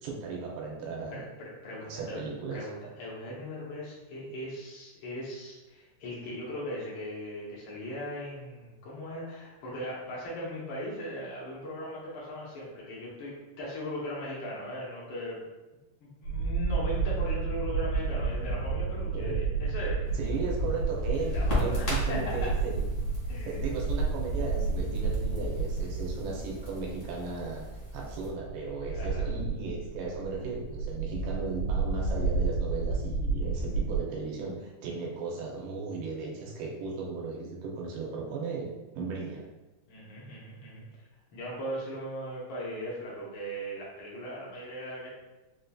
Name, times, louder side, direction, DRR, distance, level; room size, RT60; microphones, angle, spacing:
voice 1, 0.0-1.2 1.8-2.7 19.1-19.4 20.1-22.8 23.5-27.7 27.9-39.5, right 4 dB, 90° right, -2 dB, 2.4 m, -36 dB
voice 2, 1.1-2.2 2.5-15.4 16.0-20.0 21.3-22.5 23.3-23.7 28.9-29.2 39.9-40.8 41.3-45.1, equal, 90° left, -6 dB, 1.1 m, -38 dB
sound 1, 16.2-26.8 27.1-27.2 28.4-34.0, right 3 dB, 70° right, 1.8 m, -30 dB
Crackle, 20.0-28.3, equal, 50° left, 0.9 m, -38 dB
5.5 x 2.6 x 2.3 m, 1.1 s
omnidirectional pair, 3.7 m